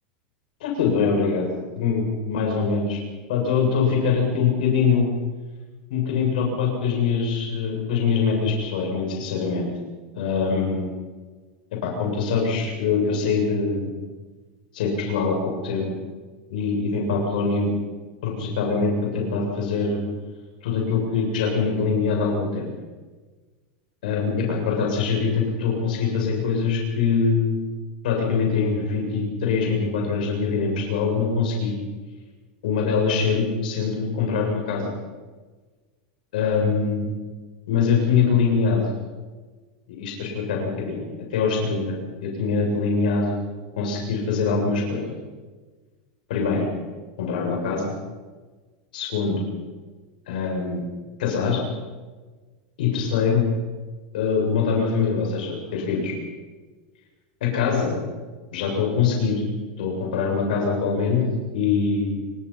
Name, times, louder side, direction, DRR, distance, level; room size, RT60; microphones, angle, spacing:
voice 1, 0.6-3.0 3.3-5.1 5.9-9.7 10.1-10.9 11.8-13.9 14.7-15.4 15.6-15.9 16.5-17.7 18.2-20.0 20.6-22.7 24.0-27.6 28.0-31.7 32.6-34.9 36.3-37.1 37.7-38.9 39.9-41.0 41.3-43.3 43.8-45.1 46.3-46.7 47.2-47.9 48.9-49.4 50.3-50.8 51.2-51.6 52.8-53.4 54.1-56.1 57.4-58.0 58.5-59.4 59.8-61.2 61.5-62.1, left 5 dB, 80° left, 0 dB, 7.3 m, -23 dB
29.5 x 19.5 x 5.9 m, 1.4 s
supercardioid pair, 155°, 5 cm